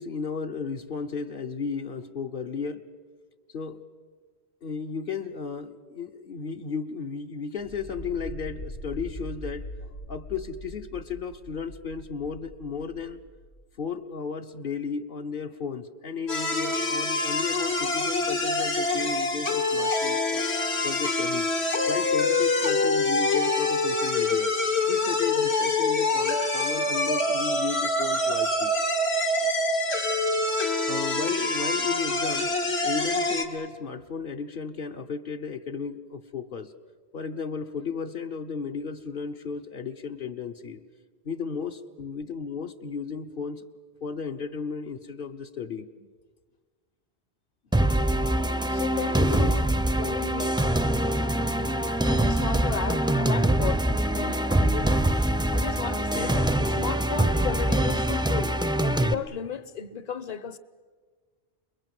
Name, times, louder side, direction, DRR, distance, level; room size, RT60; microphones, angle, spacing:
voice 1, 0.0-2.8 3.5-3.8 4.6-9.7 10.1-13.2 13.8-20.4 20.8-21.5 21.9-24.5 24.9-28.7 30.9-36.7 37.1-40.8 41.2-43.6 44.0-46.1 49.2-49.5 50.1-50.2 56.1-56.4, left 5 dB, 55° left, 1.1 m, -34 dB
sound 1, 7.6-13.6, equal, 90° left, 2.8 m, -41 dB
sound 2, 16.3-33.4, left 2 dB, 75° left, 2.3 m, -25 dB
sound 3, 47.7-59.1, right 1 dB, 5° right, 0.5 m, -24 dB
voice 2, 48.7-49.6 50.0-50.6 52.1-55.0 55.5-60.6, left 7 dB, 40° left, 1.0 m, -35 dB
28.0 x 22.0 x 7.8 m
omnidirectional pair, 1.1 m